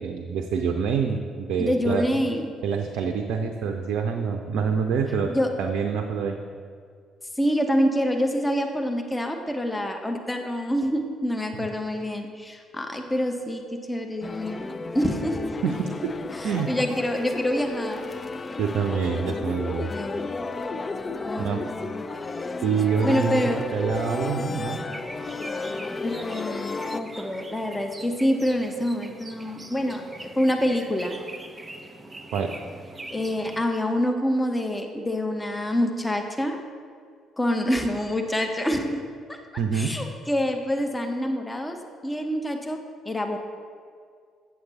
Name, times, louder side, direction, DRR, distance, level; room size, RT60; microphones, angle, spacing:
voice 1, 0.0-2.1 2.6-5.3 5.6-6.4 15.6-15.9 16.4-16.7 18.6-19.9 21.4-21.6 22.6-23.4 23.7-24.8 32.3-32.5 39.6-39.9, right 6 dB, 60° right, 5 dB, 0.5 m, -26 dB
voice 2, 1.6-2.5 5.3-5.5 7.4-13.6 13.9-15.6 16.3-18.0 19.2-19.5 19.9-20.3 21.2-21.7 23.0-23.6 26.0-31.2 33.1-36.6 37.4-39.0 39.3-39.4 39.7-41.8 42.0-42.8 43.0-43.4, equal, 15° left, 4 dB, 0.9 m, -26 dB
sound 1, 14.2-27.0, left 3 dB, 30° left, 0.4 m, -33 dB
sound 2, 24.9-33.7, right 2 dB, 20° right, 0.7 m, -43 dB
7.9 x 7.7 x 4.1 m, 2.1 s
figure-of-eight pair, 45°, 0 cm